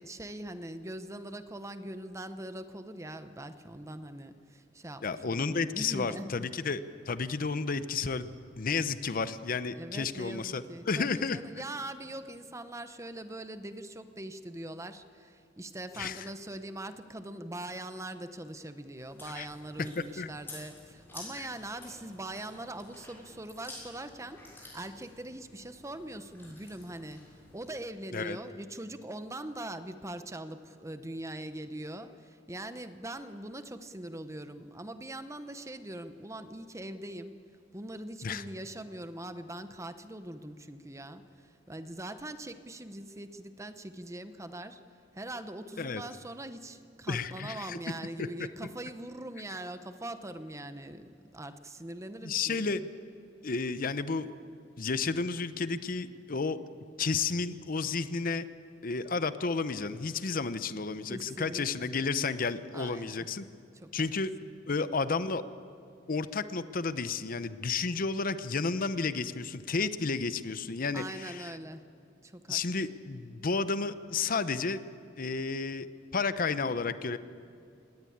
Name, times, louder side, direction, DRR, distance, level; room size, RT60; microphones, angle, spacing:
voice 1, 0.0-6.3 9.7-37.4 37.7-44.8 45.1-52.8 61.1-61.9 62.7-63.3 63.7-64.1 70.9-71.8 72.2-72.8, right 1 dB, 15° right, 10 dB, 0.9 m, -42 dB
voice 2, 5.0-6.8 7.1-8.3 8.6-11.4 16.0-16.2 19.3-19.5 20.2-20.3 21.4-21.5 28.1-28.4 38.2-38.4 45.8-46.0 47.1-47.8 48.2-48.3 52.2-52.8 53.4-54.3 54.8-56.6 57.0-58.4 58.8-63.4 63.9-64.3 64.7-65.4 66.1-71.5 72.5-74.8 75.2-75.9 76.1-77.2, left 4 dB, 50° left, 13 dB, 0.7 m, -32 dB
Chewing mastication, 19.0-27.8, left 2 dB, 10° left, 7.2 m, -51 dB
20.0 x 18.5 x 8.6 m, 2.4 s
head